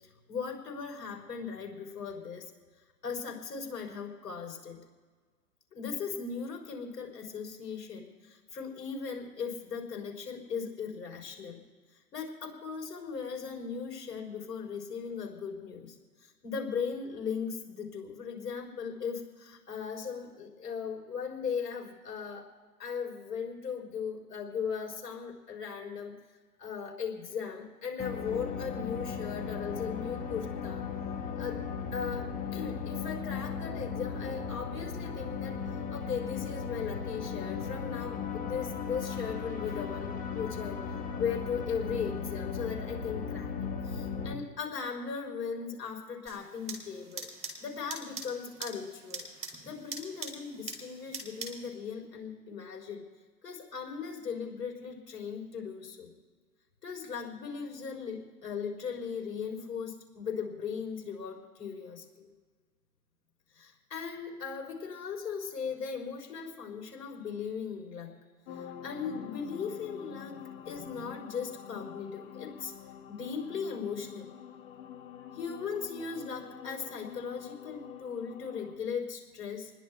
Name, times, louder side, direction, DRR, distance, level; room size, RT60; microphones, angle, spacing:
voice 1, 0.3-2.5 3.0-4.8 5.7-11.6 12.1-16.0 16.2-22.5 22.8-26.1 26.6-30.9 31.4-31.6 31.9-40.8 41.2-43.5 43.8-47.3 47.6-49.3 49.6-53.0 53.4-56.2 56.8-62.3 63.5-68.1 68.5-72.7 73.1-74.3 75.3-79.7, left 6 dB, 75° left, 2 dB, 3.7 m, -38 dB
sound 1, 28.0-44.3, left 6 dB, 15° left, 1.5 m, -36 dB
sound 2, 46.3-51.7, right 4 dB, 15° right, 2.7 m, -43 dB
sound 3, 68.5-78.8, left 9 dB, 55° left, 1.6 m, -47 dB
28.0 x 20.5 x 2.3 m, 1.5 s
hypercardioid pair, 125°, 48 cm